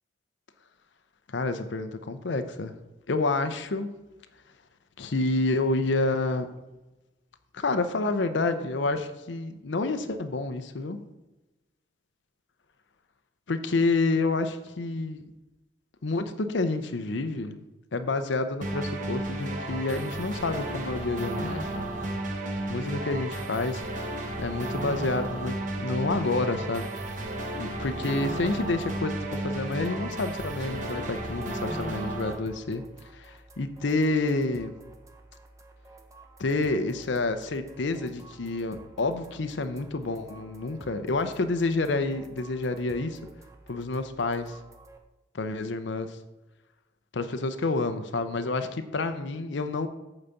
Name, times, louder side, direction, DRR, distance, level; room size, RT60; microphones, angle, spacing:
voice 1, 1.3-2.8 3.1-3.9 5.0-6.5 7.5-11.0 13.5-15.3 16.0-17.6 17.9-21.9 22.7-23.8 24.4-26.9 27.6-32.8 33.1-34.7 36.4-43.2 43.7-44.6 45.3-46.2 47.1-49.9, left 3 dB, 70° left, 9 dB, 0.6 m, -29 dB
sound 1, 18.6-32.3, right 1 dB, 40° right, 1.2 m, -33 dB
sound 2, 28.3-45.0, right 2 dB, 15° right, 0.7 m, -51 dB
8.8 x 4.0 x 6.9 m, 1.0 s
head